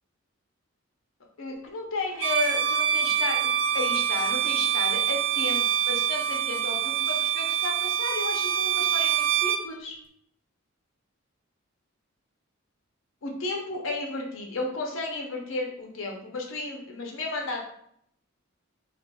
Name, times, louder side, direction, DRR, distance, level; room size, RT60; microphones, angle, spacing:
voice 1, 1.4-3.4 3.7-10.0 13.2-17.6, left 3 dB, 70° left, 1 dB, 0.6 m, -33 dB
Bowed string instrument, 2.2-9.7, right 9 dB, 75° right, 0.4 m, -25 dB
4.2 x 2.3 x 2.2 m, 0.69 s
head